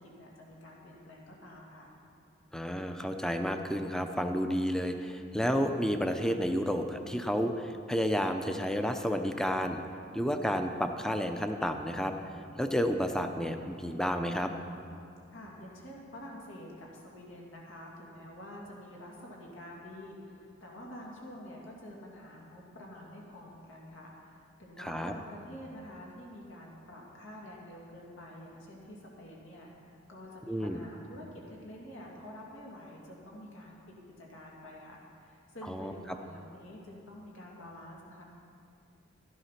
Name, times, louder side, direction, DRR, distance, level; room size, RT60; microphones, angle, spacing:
voice 1, 0.0-1.9 15.3-38.2, left 1 dB, 75° left, -2 dB, 2.5 m, -48 dB
voice 2, 2.5-9.8 10.1-12.1 12.6-14.5 24.8-25.1 30.5-30.8 35.7-35.9, equal, 5° left, 6 dB, 0.6 m, -31 dB
13.0 x 11.0 x 5.8 m, 2.5 s
head